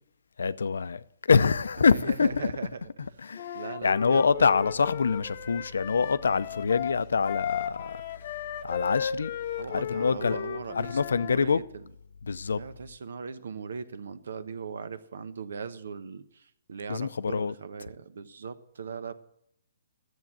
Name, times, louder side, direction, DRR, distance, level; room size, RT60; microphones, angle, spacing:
voice 1, 0.4-2.5 3.2-9.3 9.7-11.6 12.2-12.6 16.9-17.5, left 5 dB, 85° left, 0.6 m, -26 dB
voice 2, 1.9-2.8 3.5-4.5 6.4-6.5 9.6-11.8 12.6-19.1, right 5 dB, 75° right, 1.0 m, -39 dB
Wind instrument woodwind instrument, 3.4-11.4, left 9 dB, 40° left, 0.9 m, -35 dB
12.0 x 8.1 x 7.3 m
hypercardioid pair, 165°, 0 cm